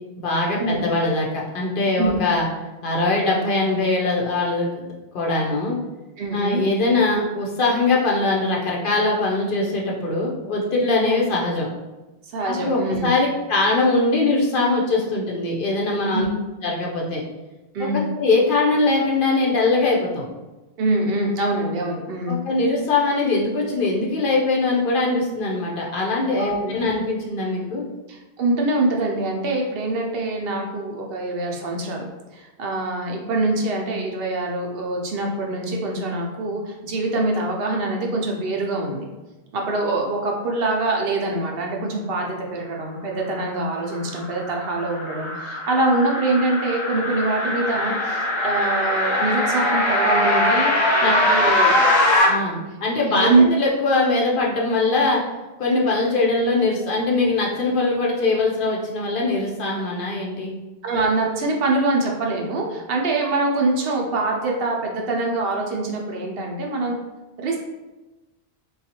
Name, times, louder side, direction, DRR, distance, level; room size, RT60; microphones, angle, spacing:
voice 1, 0.2-2.4 2.8-5.8 6.3-11.7 12.5-16.3 16.6-17.2 18.2-20.3 22.3-27.8 51.0-51.1 52.3-55.2 55.6-60.5, left 3 dB, 60° left, -2 dB, 0.8 m, -22 dB
voice 2, 6.2-6.6 12.3-13.1 16.1-16.2 17.7-18.0 20.8-22.4 26.4-26.8 28.1-32.1 32.3-39.1 39.5-51.8 53.1-53.5 60.8-66.9 67.4-67.6, right 2 dB, 70° right, 0 dB, 0.8 m, -24 dB
sound 1, 43.9-52.3, left 1 dB, 30° left, 0.7 m, -21 dB
3.8 x 2.4 x 2.8 m, 1.1 s
omnidirectional pair, 1.1 m